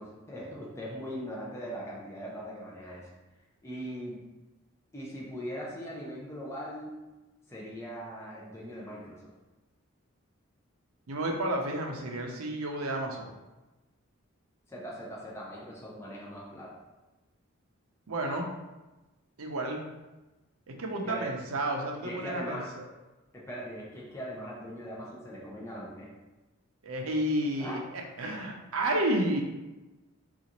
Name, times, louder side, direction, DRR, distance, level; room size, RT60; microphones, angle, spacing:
voice 1, 0.0-3.1 3.6-4.2 4.9-6.9 7.5-9.2 14.7-16.7 21.0-21.3 22.0-22.7 23.3-26.1 27.6-27.8, equal, 15° left, -5 dB, 0.6 m, -40 dB
voice 2, 11.1-13.3 18.1-18.5 19.4-19.8 20.7-22.8 26.8-29.4, right 1 dB, 85° right, 1 dB, 0.6 m, -31 dB
3.9 x 2.4 x 2.9 m, 1.1 s
head